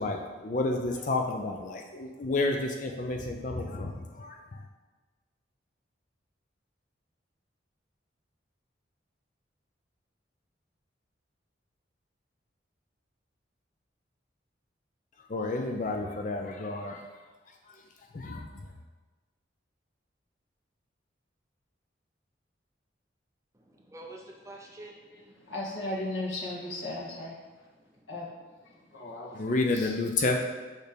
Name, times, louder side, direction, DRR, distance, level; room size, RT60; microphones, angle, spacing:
voice 1, 0.0-4.7 15.3-17.2 17.7-17.8 18.1-18.7 29.3-30.3, left 2 dB, 40° left, 3 dB, 0.5 m, -31 dB
voice 2, 23.5-25.5 27.4-28.2 28.7-29.4, right 2 dB, 15° right, -1 dB, 0.6 m, -50 dB
voice 3, 25.5-27.3 28.1-28.3 28.9-29.3 29.7-29.9, left 2 dB, 80° left, -5 dB, 1.7 m, -35 dB
6.5 x 3.3 x 5.1 m, 1.3 s
head